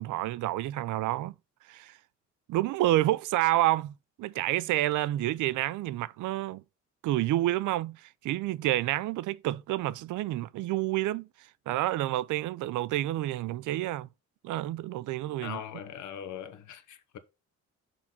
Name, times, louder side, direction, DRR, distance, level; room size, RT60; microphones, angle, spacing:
voice 1, 0.0-1.3 1.7-2.0 2.5-6.6 7.0-11.3 11.7-14.1 14.4-15.6, right 15 dB, 80° right, 0.5 m, -29 dB
voice 2, 15.4-17.2, left 9 dB, 75° left, 1.2 m, -41 dB
6.2 x 4.0 x 5.9 m
cardioid pair, 90°, 30 cm